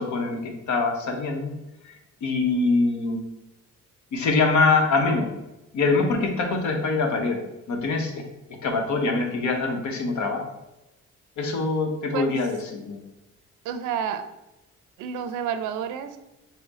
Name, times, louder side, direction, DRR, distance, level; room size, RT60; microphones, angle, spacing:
voice 1, 0.0-1.5 1.8-1.9 2.2-3.2 4.1-5.3 5.7-7.4 7.7-8.2 8.6-10.4 11.4-13.0, left 3 dB, 70° left, 3 dB, 1.0 m, -24 dB
voice 2, 13.6-14.3 15.0-16.2, right 8 dB, 90° right, 10 dB, 0.5 m, -29 dB
5.6 x 2.1 x 4.1 m, 0.99 s
cardioid pair, 90°, 30 cm